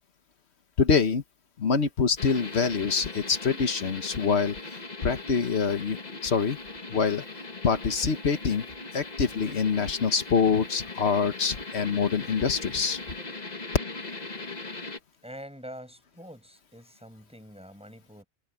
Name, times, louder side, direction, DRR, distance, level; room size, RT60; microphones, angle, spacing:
voice 1, 0.8-1.2 1.6-4.8 5.0-6.6 6.9-7.2 7.6-8.6 8.9-13.0, left 5 dB, 80° left, 1.5 m, -25 dB
sound 1, 2.2-15.0, left 3 dB, 40° left, 1.9 m, -39 dB
voice 2, 15.2-18.2, equal, 5° right, 6.4 m, -45 dB
omnidirectional pair, 1.1 m